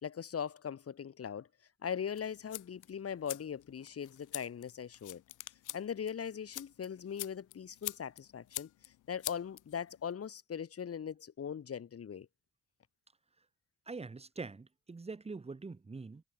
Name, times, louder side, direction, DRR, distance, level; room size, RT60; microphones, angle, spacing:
voice 1, 0.0-1.5 1.8-5.2 5.7-8.7 9.1-12.3, left 7 dB, 50° left, 1.9 m, -40 dB
sound 1, 2.1-10.1, left 15 dB, 85° left, 0.9 m, -46 dB
voice 2, 13.9-16.2, right 4 dB, 20° right, 1.1 m, -44 dB
cardioid pair, 80°, 30 cm